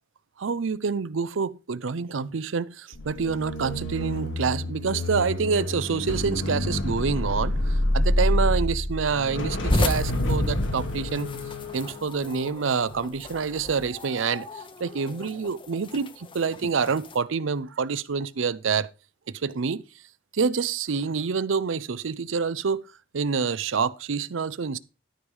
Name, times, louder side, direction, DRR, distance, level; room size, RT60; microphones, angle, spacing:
voice 1, 0.4-11.3 11.7-18.9 19.3-19.8 20.3-22.8 23.1-24.8, right 5 dB, 80° right, 0.6 m, -27 dB
sound 1, 2.9-13.2 13.6-13.9, left 1 dB, 80° left, 1.7 m, -28 dB
sound 2, 9.7-17.2, left 2 dB, 25° left, 0.8 m, -34 dB
12.5 x 5.4 x 4.8 m
head